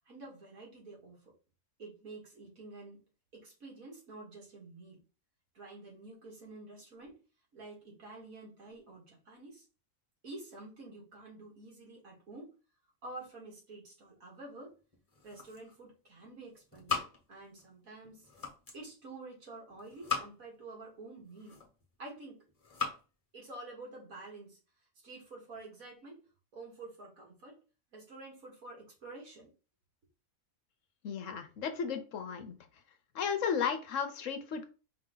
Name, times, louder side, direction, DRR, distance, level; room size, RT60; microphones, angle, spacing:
voice 1, 0.1-1.3 1.8-3.0 3.3-5.0 5.5-7.2 7.5-9.7 10.2-12.5 13.0-14.7 15.2-18.3 18.7-21.6 22.0-22.4 23.3-24.6 25.0-26.2 26.5-27.6 27.9-29.5, right 2 dB, 80° right, -2 dB, 2.2 m, -49 dB
sound 1, 14.9-15.9 16.2-17.7 18.0-18.9 19.7-20.6 21.2-21.9 22.5-23.0, left 5 dB, 30° left, 1.1 m, -39 dB
voice 2, 31.0-32.6 33.1-34.7, left 7 dB, 65° left, 8 dB, 1.0 m, -34 dB
4.9 x 2.8 x 3.8 m, 0.33 s
omnidirectional pair, 1.5 m